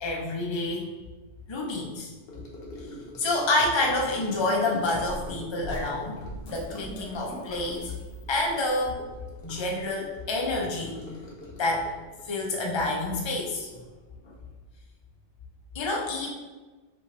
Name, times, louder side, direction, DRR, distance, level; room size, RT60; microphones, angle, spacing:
voice 1, 0.0-0.9 1.5-2.1 3.2-7.9 8.3-9.0 9.4-11.2 11.6-11.9 12.2-13.8 15.7-16.3, left 2 dB, 30° left, -2 dB, 0.6 m, -28 dB
Gurgling / Sink (filling or washing) / Trickle dribble, 2.3-13.9 14.2-14.5 14.8-14.9, left 1 dB, 60° left, 1.0 m, -45 dB
sound 1, 4.8-10.0, equal, 80° left, 1.4 m, -42 dB
5.4 x 2.6 x 3.2 m, 1.3 s
omnidirectional pair, 1.2 m